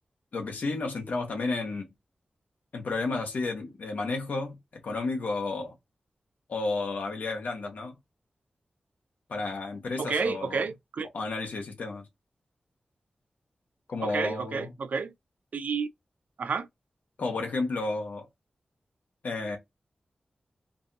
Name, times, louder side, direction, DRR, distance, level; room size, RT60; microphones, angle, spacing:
voice 1, 0.3-1.9 2.7-5.7 6.5-8.0 9.3-10.7 11.1-12.1 13.9-14.7 17.2-18.3 19.2-19.6, left 3 dB, 80° left, 1.0 m, -32 dB
voice 2, 10.0-11.1 14.0-15.1 15.5-15.9 16.4-16.7, right 5 dB, 75° right, 0.5 m, -30 dB
2.6 x 2.6 x 2.6 m
cardioid pair, 50°, 3 cm